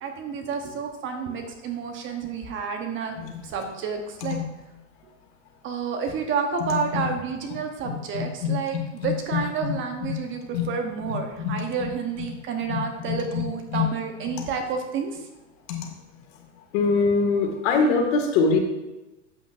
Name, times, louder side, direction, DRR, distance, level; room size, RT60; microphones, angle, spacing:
voice 1, 0.0-3.1 3.4-4.4 5.6-15.2, right 6 dB, 30° right, 4 dB, 1.0 m, -30 dB
voice 2, 7.8-9.7 10.0-10.1 10.5-10.7 11.0-11.7 12.7-12.8 13.1-13.5 13.7-13.9 14.4-14.5 15.7-15.9 16.7-18.6, left 5 dB, 50° left, 2 dB, 2.1 m, -25 dB
8.2 x 7.9 x 2.6 m, 1.0 s
hypercardioid pair, 110°, 38 cm